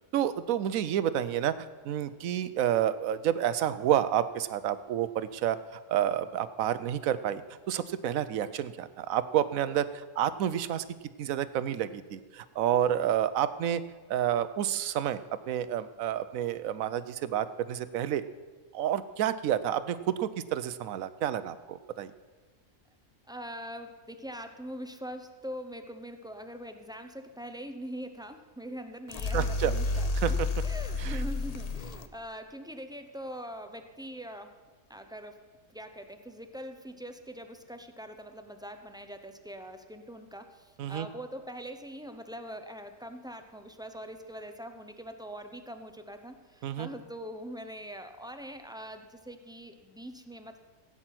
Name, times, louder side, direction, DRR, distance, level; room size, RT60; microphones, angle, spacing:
voice 1, 0.1-7.4 7.7-10.8 11.2-13.8 14.1-15.2 15.5-18.2 18.7-22.1 29.3-29.7 30.2-30.5 31.0-31.2 40.8-41.1 46.6-46.9, right 10 dB, 85° right, 14 dB, 1.1 m, -29 dB
voice 2, 23.3-30.4 30.6-34.5 34.9-35.4 35.7-50.6, equal, 5° right, 6 dB, 0.5 m, -43 dB
sound 1, 29.1-32.1, left 3 dB, 40° left, 0.6 m, -30 dB
16.0 x 8.8 x 5.9 m, 1.4 s
omnidirectional pair, 1.4 m